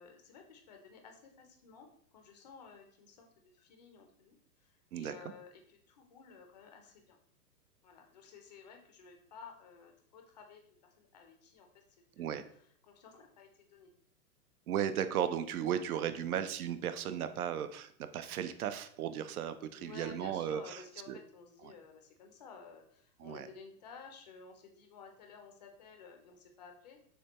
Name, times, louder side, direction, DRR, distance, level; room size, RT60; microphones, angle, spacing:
voice 1, 0.0-7.2 7.8-11.8 12.2-13.9 19.8-27.1, left 5 dB, 30° left, 3 dB, 0.4 m, -54 dB
voice 2, 14.7-20.8 21.1-21.2 21.6-21.7 23.2-23.5, right 9 dB, 65° right, 11 dB, 0.6 m, -35 dB
6.6 x 2.2 x 2.9 m, 0.62 s
hypercardioid pair, 145°, 48 cm